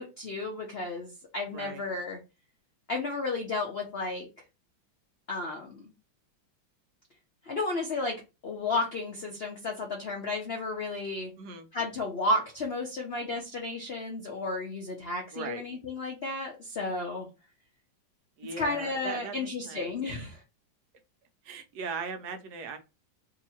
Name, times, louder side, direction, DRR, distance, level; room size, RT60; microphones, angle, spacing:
voice 1, 0.0-2.2 2.9-4.3 5.3-5.8 7.4-11.3 11.7-17.3 18.6-20.4, left 2 dB, 75° left, 0.5 m, -33 dB
voice 2, 1.5-1.8 11.4-11.7 15.3-15.6 18.4-20.2 21.4-22.8, right 4 dB, 70° right, 1.0 m, -39 dB
3.0 x 2.8 x 4.2 m
omnidirectional pair, 2.1 m